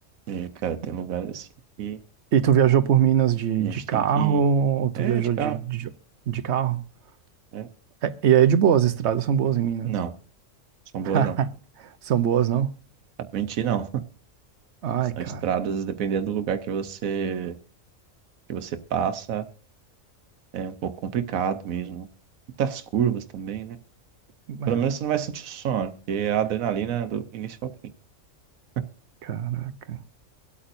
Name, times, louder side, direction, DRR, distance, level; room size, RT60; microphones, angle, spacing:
voice 1, 0.3-1.5 1.8-2.0 3.6-4.4 5.0-5.6 7.5-7.7 9.8-10.1 10.9-11.4 13.3-13.9 15.2-17.6 18.5-19.4 20.5-22.1 22.6-23.8 24.7-27.6, right 8 dB, 85° right, 1.2 m, -28 dB
voice 2, 2.3-5.9 6.3-6.8 8.0-9.9 11.0-11.5 11.8-12.7 14.8-15.4 24.5-24.8 29.2-30.0, right 9 dB, 60° right, 1.0 m, -22 dB
24.5 x 8.5 x 2.6 m
omnidirectional pair, 1.4 m